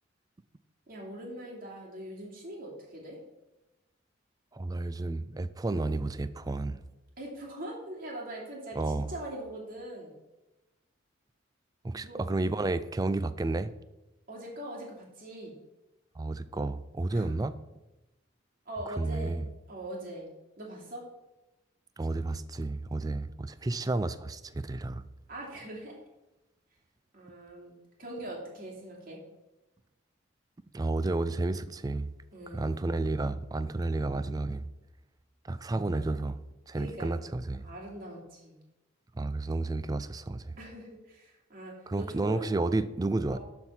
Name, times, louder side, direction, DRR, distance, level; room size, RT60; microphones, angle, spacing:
voice 1, 0.9-3.2 7.2-10.1 11.9-12.2 14.3-15.5 17.1-17.4 18.6-20.3 20.6-21.0 25.3-26.0 27.1-29.2 32.3-32.9 36.7-37.2 37.6-38.6 40.6-42.5 43.3-43.4, right 1 dB, 45° right, 2.8 m, -42 dB
voice 2, 4.5-6.8 8.8-9.1 11.8-13.7 16.2-17.5 18.9-19.5 22.0-25.0 30.7-32.1 32.5-34.6 35.4-36.4 36.7-37.7 39.1-40.6 41.9-43.4, right 2 dB, 20° right, 0.4 m, -31 dB
12.5 x 4.6 x 5.6 m
head